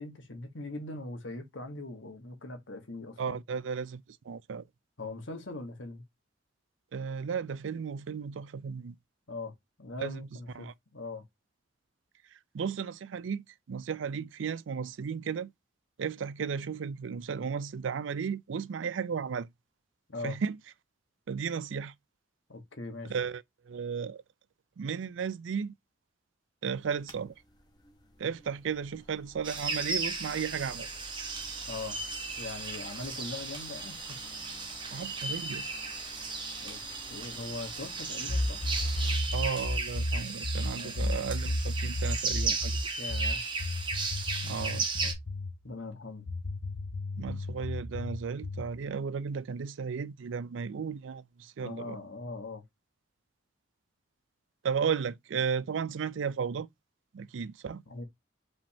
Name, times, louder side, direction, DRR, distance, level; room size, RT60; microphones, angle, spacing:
voice 1, 0.0-3.4 5.0-6.0 9.3-9.5 9.8-11.2 20.1-20.4 22.5-23.1 31.7-32.0 32.4-34.0 36.6-36.8 37.1-38.6 40.7-41.1 43.0-43.4 45.6-46.3 51.6-52.6 57.9-58.0, left 3 dB, 75° left, 1.3 m, -41 dB
voice 2, 3.2-4.6 6.9-8.9 10.0-10.3 10.6-10.7 12.5-15.5 16.0-19.5 20.2-20.6 21.3-21.9 23.1-24.2 24.8-25.7 26.6-27.3 28.2-30.9 34.9-35.7 39.3-42.8 44.4-45.1 47.2-52.0 54.6-56.7 57.1-57.8, right 6 dB, 75° right, 0.4 m, -34 dB
sound 1, 26.7-39.2, left 2 dB, 20° left, 0.9 m, -52 dB
sound 2, 29.4-45.1, right 4 dB, 25° right, 1.1 m, -35 dB
sound 3, 38.3-45.6 46.3-48.7, left 1 dB, 60° left, 0.7 m, -33 dB
5.1 x 3.5 x 2.8 m
head